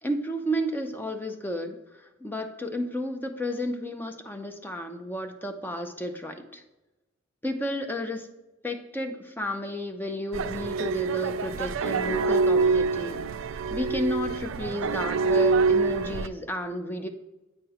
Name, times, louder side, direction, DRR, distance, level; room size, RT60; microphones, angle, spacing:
voice 1, 0.0-6.6 7.4-8.3 8.6-13.2 13.7-17.1, equal, 10° left, 5 dB, 0.6 m, -32 dB
sound 1, 10.3-16.3, right 4 dB, 70° right, 0.4 m, -25 dB
8.8 x 3.0 x 4.9 m, 1.0 s
head